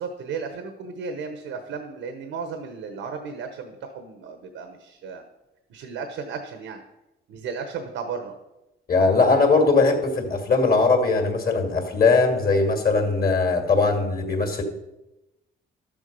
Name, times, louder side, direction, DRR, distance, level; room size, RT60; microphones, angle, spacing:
voice 1, 0.0-5.2 5.7-6.8 7.3-8.3, right 5 dB, 85° right, 6 dB, 1.0 m, -34 dB
voice 2, 8.9-14.6, left 3 dB, 50° left, 4 dB, 2.3 m, -20 dB
12.0 x 7.2 x 5.3 m, 0.97 s
cardioid pair, 90°, 20 cm